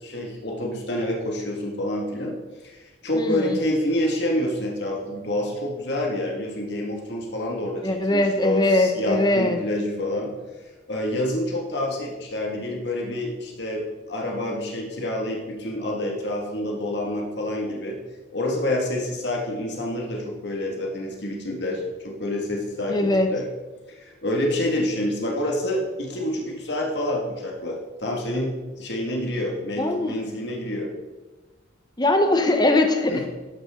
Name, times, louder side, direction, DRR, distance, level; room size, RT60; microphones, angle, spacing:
voice 1, 0.0-2.4 2.6-10.3 10.9-18.0 18.3-23.5 23.9-30.9 33.1-33.3, left 1 dB, 60° left, -1 dB, 2.1 m, -28 dB
voice 2, 3.1-3.6 7.8-9.6 22.9-23.3 29.8-30.1 32.0-33.3, left 2 dB, 20° left, 5 dB, 0.9 m, -21 dB
13.0 x 11.0 x 3.8 m, 1.2 s
head